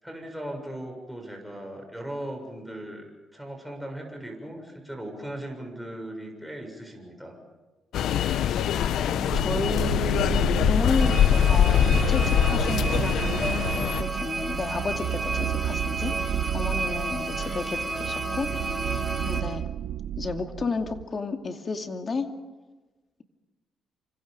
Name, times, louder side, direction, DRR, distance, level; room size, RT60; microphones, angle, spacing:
voice 1, 0.0-3.1 3.3-7.4 17.3-17.6, right 1 dB, ahead, 2 dB, 7.1 m, -38 dB
sound 1, 7.9-14.0, left 9 dB, 80° left, 0.9 m, -23 dB
voice 2, 9.1-18.5 19.2-19.6 20.2-22.3, left 4 dB, 40° left, 5 dB, 2.5 m, -32 dB
sound 2, 9.3-21.0, right 11 dB, 75° right, 0.7 m, -32 dB
sound 3, 11.0-19.4, right 2 dB, 25° right, 5.1 m, -32 dB
28.0 x 25.5 x 5.3 m, 1.2 s
cardioid pair, 90°, 0 cm